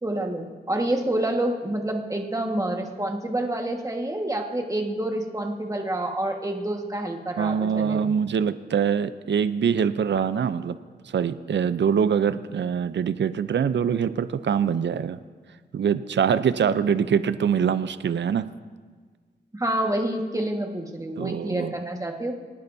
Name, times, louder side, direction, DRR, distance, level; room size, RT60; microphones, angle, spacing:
voice 1, 0.0-8.1 16.7-16.8 19.5-22.3, right 1 dB, 20° right, 2 dB, 1.6 m, -28 dB
voice 2, 7.4-10.8 11.0-15.2 15.7-18.5 21.2-21.7, right 7 dB, 75° right, 13 dB, 0.5 m, -24 dB
26.0 x 9.8 x 2.7 m, 1.5 s
cardioid pair, 70°, 18 cm